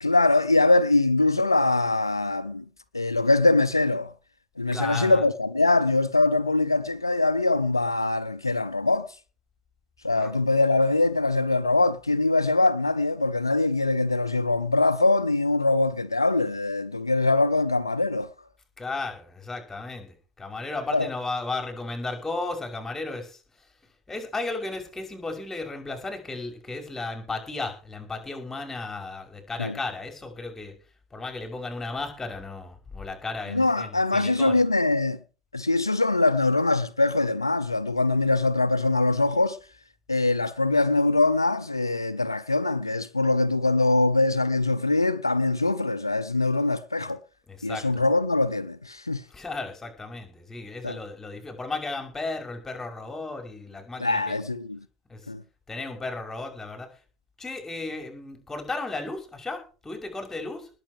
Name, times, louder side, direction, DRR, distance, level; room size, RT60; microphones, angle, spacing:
voice 1, 0.0-2.6 2.9-4.1 4.6-9.1 10.0-18.3 20.9-21.1 29.6-29.8 33.5-35.2 35.5-39.6 40.1-47.2 47.6-49.2 50.8-51.0 54.0-54.8 55.3-55.4, left 2 dB, 90° left, 0.6 m, -23 dB
voice 2, 4.7-5.2 10.1-10.3 18.8-23.4 24.1-30.7 31.1-34.6 47.5-48.0 49.3-54.4 55.1-55.2 55.7-56.9 57.4-60.7, left 3 dB, 15° left, 5.9 m, -34 dB
20.0 x 7.9 x 4.9 m
figure-of-eight pair, 70°, 2 cm